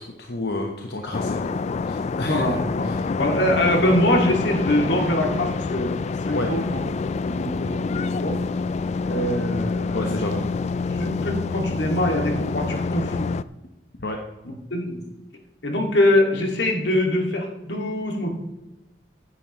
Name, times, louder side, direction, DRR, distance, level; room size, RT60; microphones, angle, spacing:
voice 1, 0.0-1.6 1.8-2.6 2.8-3.1 6.3-6.6 9.9-10.5 14.0-14.2, left 2 dB, 65° left, 2 dB, 1.0 m, -30 dB
sound 1, 1.1-13.4, left 4 dB, 40° left, 0.3 m, -27 dB
voice 2, 2.2-6.0 6.2-6.8 7.2-8.4 9.0-10.1 10.9-13.3 14.7-15.0 15.6-18.4, left 1 dB, 85° left, 1 dB, 2.2 m, -23 dB
14.5 x 9.8 x 3.1 m, 1.0 s
head